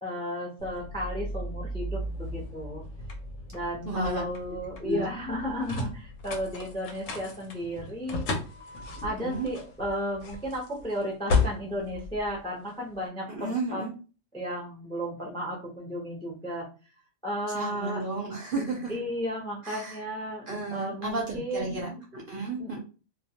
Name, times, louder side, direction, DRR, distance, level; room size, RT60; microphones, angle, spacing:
voice 1, 0.0-2.8 3.5-8.2 9.0-13.8 14.3-16.7 17.2-18.0 18.9-20.5 20.7-22.0 22.6-22.8, equal, 5° left, -2 dB, 0.4 m, -34 dB
sound 1, 0.6-12.9, left 3 dB, 75° left, 1.0 m, -34 dB
voice 2, 3.8-4.2 4.8-5.0 9.1-9.5 13.3-13.9 17.5-18.9 19.7-20.0 20.5-22.8, right 2 dB, 55° right, -2 dB, 0.7 m, -32 dB
2.3 x 2.2 x 2.8 m, 0.34 s
omnidirectional pair, 1.4 m